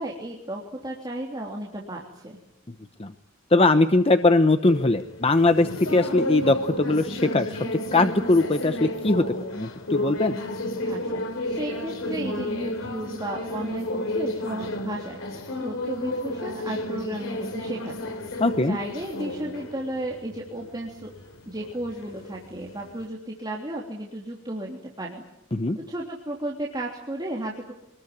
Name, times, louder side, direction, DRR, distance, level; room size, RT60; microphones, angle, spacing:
voice 1, 0.0-2.4 10.8-21.1 21.4-25.2 25.9-27.7, right 1 dB, 20° right, -2 dB, 3.3 m, -34 dB
voice 2, 3.5-10.4 18.4-18.8 25.5-25.8, left 2 dB, 30° left, 9 dB, 0.9 m, -21 dB
sound 1, 4.6-23.1, left 1 dB, 75° left, 3.2 m, -32 dB
26.0 x 20.5 x 9.7 m, 0.87 s
head